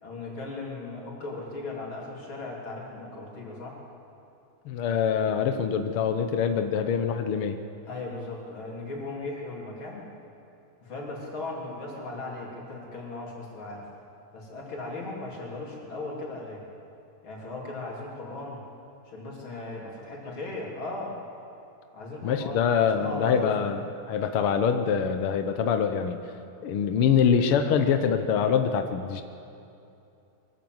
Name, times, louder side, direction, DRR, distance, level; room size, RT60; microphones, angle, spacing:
voice 1, 0.0-3.8 7.9-10.1 10.8-13.9 14.3-16.6 17.2-18.6 19.1-21.2 21.9-22.6 23.0-23.7, left 2 dB, 35° left, -3 dB, 4.1 m, -37 dB
voice 2, 4.6-7.6 22.2-23.8 24.1-26.2 26.6-29.2, left 7 dB, 80° left, 7 dB, 1.2 m, -24 dB
23.0 x 14.5 x 7.9 m, 2.8 s
omnidirectional pair, 3.8 m